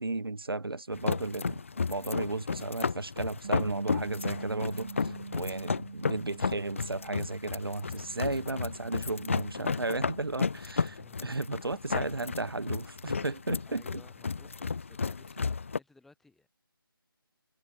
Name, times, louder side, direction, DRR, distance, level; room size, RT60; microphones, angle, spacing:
voice 1, 0.0-1.6 1.9-11.0 11.2-13.8, right 2 dB, 80° right, 3.1 m, -34 dB
sound 1, 0.9-15.8, left 5 dB, 35° left, 0.4 m, -33 dB
Bass guitar, 3.4-9.7, right 4 dB, 60° right, 1.4 m, -45 dB
voice 2, 10.8-11.4 13.6-16.5, left 3 dB, ahead, 6.7 m, -59 dB
figure-of-eight pair, 165°, 12 cm